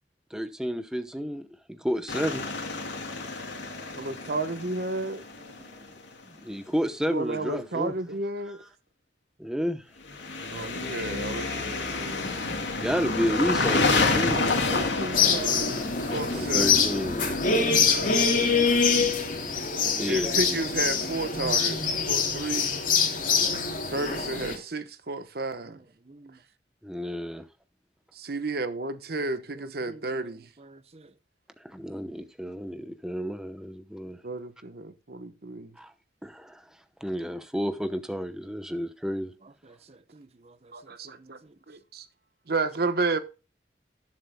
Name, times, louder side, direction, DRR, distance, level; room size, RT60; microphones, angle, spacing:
voice 1, 0.3-2.4 6.3-7.9 8.5-8.6 9.4-9.8 10.8-10.9 12.6-14.8 16.3-17.9 20.0-20.6 26.8-27.5 31.6-34.2 35.8-35.9 36.2-36.6 37.0-39.3, equal, 5° right, 0.8 m, -31 dB
sound 1, 2.1-5.9 10.1-17.8, left 3 dB, 90° left, 3.1 m, -29 dB
voice 2, 3.2-3.9 5.4-5.9 26.1-26.4 29.5-30.3 30.6-31.1 39.9-40.7 41.0-41.5, right 2 dB, 35° right, 0.9 m, -52 dB
voice 3, 4.0-5.2 7.1-8.6 10.5-12.3 14.3-15.8 16.1-16.8 20.1-21.8 22.1-22.8 23.9-25.8 28.1-30.5 34.2-35.7 40.7-41.4 41.7-42.1 42.5-43.2, right 3 dB, 60° right, 1.0 m, -32 dB
sound 2, 15.1-24.6, left 5 dB, 50° left, 3.0 m, -24 dB
19.0 x 7.5 x 2.2 m
head